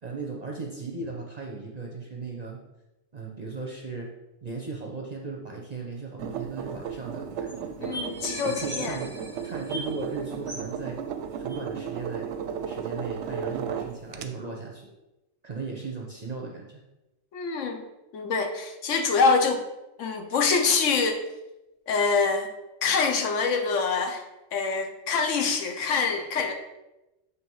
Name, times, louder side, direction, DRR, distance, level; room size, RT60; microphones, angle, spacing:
voice 1, 0.0-2.6 3.1-4.1 4.4-8.0 8.4-9.1 9.4-11.0 11.4-12.3 12.6-14.9 15.4-16.8, right 4 dB, 40° right, -1 dB, 0.7 m, -37 dB
sound 1, 6.2-14.3, right 7 dB, 65° right, 0.8 m, -34 dB
sound 2, 6.7-6.8 6.9-7.0 7.5-7.6 7.9-10.1 10.5-10.7 11.5-11.6, equal, 30° left, 2.3 m, -39 dB
voice 2, 7.8-9.0 17.3-17.9 18.1-19.6 20.0-21.2 21.9-22.5 22.8-24.2 24.5-26.5, left 4 dB, 65° left, 5 dB, 1.0 m, -25 dB
7.5 x 3.2 x 4.6 m, 0.98 s
omnidirectional pair, 1.4 m